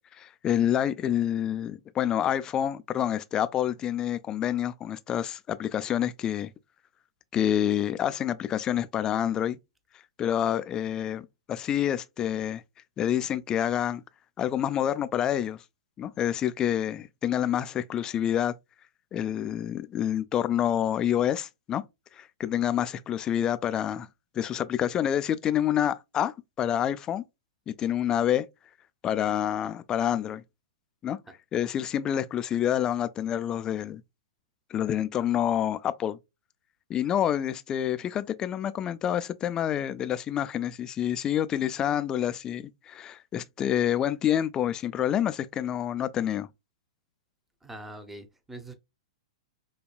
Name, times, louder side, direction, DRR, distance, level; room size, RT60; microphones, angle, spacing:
voice 1, 0.2-6.5 7.3-9.6 10.2-12.6 13.0-14.0 14.4-15.6 16.0-18.5 19.1-21.8 22.1-24.1 24.3-27.2 27.7-28.4 29.0-30.4 31.0-31.2 31.5-34.0 34.7-36.2 36.9-46.5, left 10 dB, 25° left, 0.4 m, -27 dB
voice 2, 47.6-48.7, right 1 dB, 10° right, 0.7 m, -43 dB
5.2 x 2.3 x 2.2 m
hypercardioid pair, 110°, 3 cm